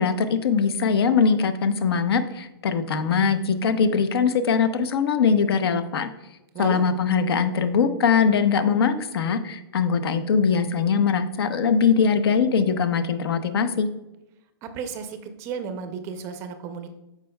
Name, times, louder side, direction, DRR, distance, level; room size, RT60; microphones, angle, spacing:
voice 1, 0.0-6.1 6.6-13.9, left 6 dB, 70° left, 11 dB, 0.8 m, -21 dB
voice 2, 6.5-6.9 14.6-16.9, right 6 dB, 20° right, 8 dB, 0.5 m, -33 dB
13.0 x 4.7 x 2.2 m, 0.95 s
hypercardioid pair, 160°, 13 cm